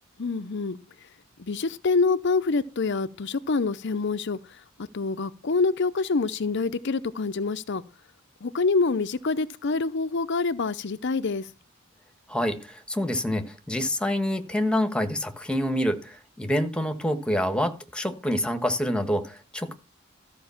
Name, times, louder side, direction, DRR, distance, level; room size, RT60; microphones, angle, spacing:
voice 1, 0.2-1.1 1.4-7.8 8.4-11.5, left 4 dB, 55° left, 0.6 m, -26 dB
voice 2, 12.3-19.7, equal, 5° left, 1.5 m, -27 dB
14.0 x 5.3 x 7.1 m
head